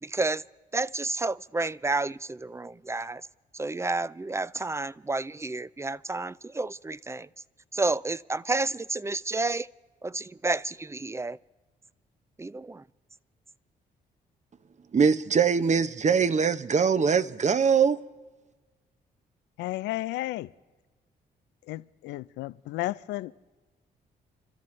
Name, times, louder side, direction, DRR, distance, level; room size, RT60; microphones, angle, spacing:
voice 1, 0.0-0.4 0.7-3.3 3.5-7.3 7.7-9.7 10.0-11.4 12.4-12.8, right 3 dB, 15° right, 0.4 m, -30 dB
voice 2, 14.9-18.0, right 6 dB, 40° right, 0.8 m, -22 dB
voice 3, 19.6-20.5 21.7-23.3, left 17 dB, 90° left, 0.4 m, -33 dB
30.0 x 13.0 x 3.2 m
supercardioid pair, 60°, 18 cm